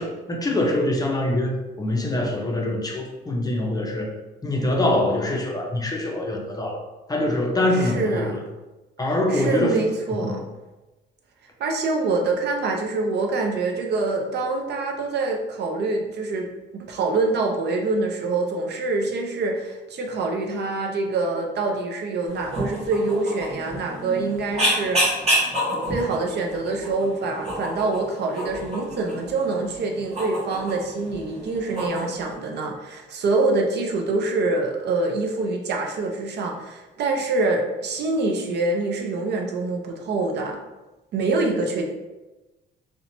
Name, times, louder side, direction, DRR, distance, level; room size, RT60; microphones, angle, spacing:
voice 1, 0.0-4.1 4.4-6.8 7.1-8.4 9.0-9.8 10.2-10.3, left 1 dB, 20° left, 0 dB, 0.5 m, -24 dB
voice 2, 7.7-8.4 9.3-10.4 11.6-25.2 25.9-40.6 41.1-41.9, right 3 dB, 60° right, 2 dB, 0.5 m, -25 dB
sound 1, 22.3-32.3, equal, 30° right, 1.1 m, -29 dB
2.7 x 2.1 x 2.6 m, 1.1 s
cardioid pair, 90°, 20 cm